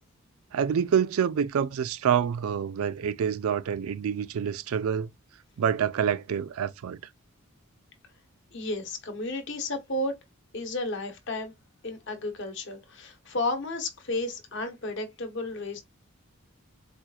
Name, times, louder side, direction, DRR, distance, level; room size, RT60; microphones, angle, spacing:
voice 1, 0.5-5.1 5.6-7.0, right 8 dB, 75° right, 0.4 m, -27 dB
voice 2, 8.5-10.2 10.5-11.5 11.8-15.8, left 2 dB, 55° left, 1.0 m, -32 dB
4.3 x 2.4 x 2.3 m
head